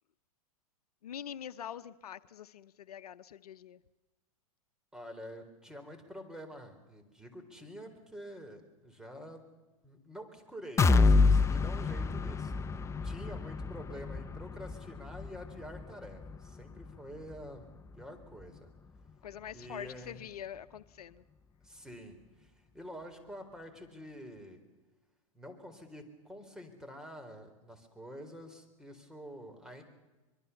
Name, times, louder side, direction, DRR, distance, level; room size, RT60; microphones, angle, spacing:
voice 1, 1.0-3.8 19.2-21.2, left 9 dB, 85° left, 14 dB, 0.8 m, -45 dB
voice 2, 4.9-9.4 9.8-17.7 17.9-18.7 19.5-20.3 21.6-24.6 25.3-29.8, equal, 5° right, 5 dB, 3.8 m, -48 dB
sound 1, 10.8-18.6 19.0-19.1 19.5-19.6, left 4 dB, 15° left, 0.7 m, -29 dB
24.0 x 23.0 x 7.1 m, 1.2 s
hypercardioid pair, 120°, 19 cm